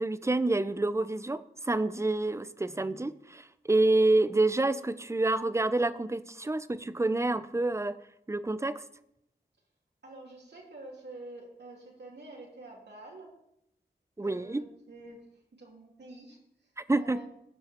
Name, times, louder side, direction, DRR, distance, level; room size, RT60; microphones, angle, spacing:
voice 1, 0.0-8.0 8.3-8.8 14.2-14.7 16.9-17.2, right 2 dB, 15° right, 15 dB, 0.6 m, -28 dB
voice 2, 10.0-13.3 14.2-15.2 15.6-17.2, right 2 dB, 70° right, -2 dB, 3.1 m, -48 dB
15.0 x 5.5 x 4.5 m, 0.78 s
cardioid pair, 45°, 18 cm